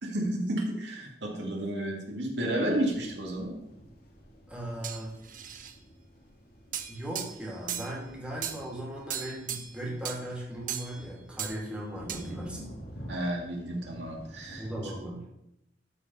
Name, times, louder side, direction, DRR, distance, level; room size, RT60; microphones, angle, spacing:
voice 1, 0.0-3.5 13.1-14.7, right 1 dB, 85° right, -1 dB, 2.4 m, -31 dB
sound 1, 2.5-14.9, equal, 60° left, 2.3 m, -49 dB
voice 2, 4.5-5.1 6.9-12.6 14.6-15.2, right 1 dB, 5° right, -3 dB, 2.7 m, -38 dB
sound 2, 4.8-5.7 6.7-8.0 8.4-8.7 9.1-9.8 10.0-10.2 10.7-11.0 11.4-11.6 12.1-12.3, right 9 dB, 50° right, 0.8 m, -37 dB
13.0 x 4.8 x 5.5 m, 0.81 s
head